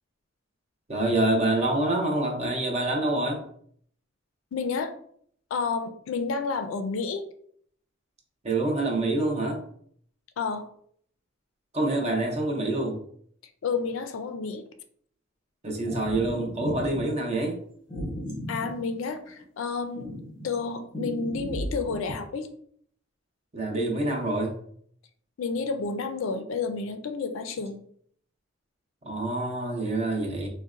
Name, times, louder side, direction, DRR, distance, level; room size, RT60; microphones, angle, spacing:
voice 1, 0.9-3.4 8.4-9.6 11.7-13.0 15.6-17.6 23.5-24.6 29.0-30.5, right 2 dB, 35° right, 1 dB, 0.6 m, -26 dB
voice 2, 4.5-4.9 5.5-7.2 10.4-10.7 13.6-14.6 18.5-20.1 20.4-22.5 25.4-27.8, left 4 dB, 75° left, 8 dB, 0.4 m, -30 dB
sound 1, 15.9-17.1 17.9-19.4 19.9-22.1, equal, 20° left, 0.7 m, -35 dB
3.8 x 2.1 x 2.4 m, 0.63 s
head